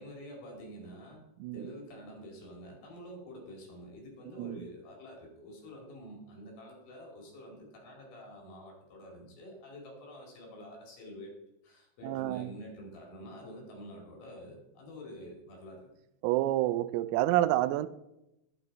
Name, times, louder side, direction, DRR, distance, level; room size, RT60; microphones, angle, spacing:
voice 1, 0.0-1.2 1.5-11.3 11.6-15.9, equal, 55° left, 0 dB, 3.8 m, -48 dB
voice 2, 12.0-12.5 16.2-17.9, right 14 dB, 90° right, 14 dB, 3.3 m, -28 dB
11.0 x 9.7 x 4.0 m, 0.88 s
omnidirectional pair, 5.9 m